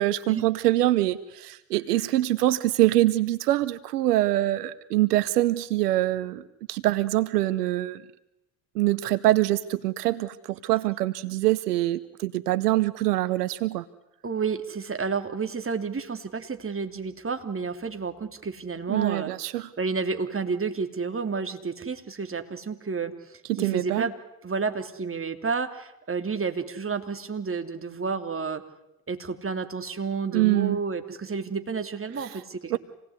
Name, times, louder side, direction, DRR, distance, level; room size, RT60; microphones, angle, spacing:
voice 1, 0.0-6.4 6.7-8.0 8.7-13.9 18.9-19.7 23.5-24.0 30.3-30.8 32.2-32.3 32.7-32.8, right 15 dB, 90° right, 16 dB, 0.9 m, -24 dB
voice 2, 14.2-19.3 19.8-24.1 24.4-28.6 29.1-32.8, right 5 dB, 30° right, 7 dB, 3.3 m, -31 dB
27.0 x 19.0 x 9.7 m, 0.89 s
hypercardioid pair, 55°, 45 cm